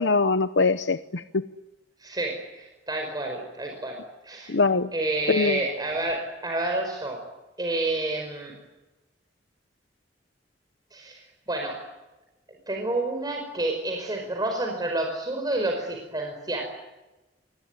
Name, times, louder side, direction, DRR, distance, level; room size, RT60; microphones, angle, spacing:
voice 1, 0.0-1.4 4.5-4.9 5.3-5.6, left 4 dB, 85° left, 10 dB, 0.9 m, -22 dB
voice 2, 2.0-4.6 4.9-7.2 7.6-8.6 10.9-11.8 12.5-16.6, right 2 dB, 25° right, 2 dB, 5.1 m, -29 dB
27.0 x 21.0 x 9.8 m, 1.1 s
head